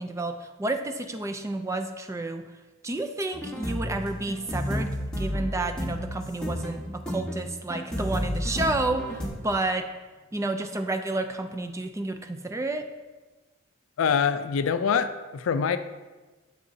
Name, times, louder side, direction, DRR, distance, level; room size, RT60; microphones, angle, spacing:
voice 1, 0.0-2.5 2.8-4.9 5.2-9.9 10.3-12.9, right 2 dB, 15° right, 7 dB, 0.3 m, -30 dB
sound 1, 3.3-9.3, equal, 5° left, 1.2 m, -31 dB
voice 2, 14.0-15.8, left 6 dB, 70° left, 11 dB, 0.4 m, -24 dB
7.4 x 6.7 x 2.7 m, 1.2 s
head